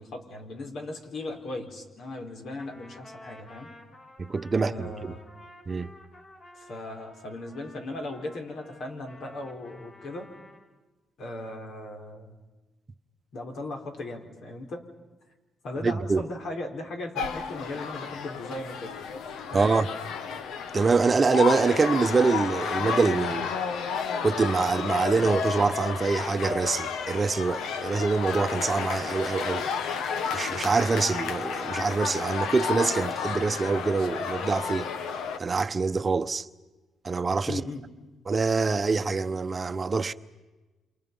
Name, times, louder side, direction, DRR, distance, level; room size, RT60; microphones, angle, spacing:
voice 1, 0.0-3.7 4.6-5.3 6.5-10.3 11.2-12.4 13.3-14.8 15.6-18.9 19.5-19.9 37.5-37.8, left 2 dB, 65° left, 4.5 m, -38 dB
Trumpet, 2.6-10.7, left 1 dB, 45° left, 5.8 m, -51 dB
voice 2, 4.3-5.1 5.7-5.9 15.8-16.2 19.5-19.9 20.7-23.5 24.2-29.6 30.3-34.9 35.4-36.5 37.0-37.6 38.3-40.1, right 4 dB, 35° right, 0.9 m, -25 dB
sound 1, 17.2-35.4, left 6 dB, 80° left, 1.4 m, -32 dB
28.5 x 28.0 x 5.5 m
cardioid pair, 90°, 0 cm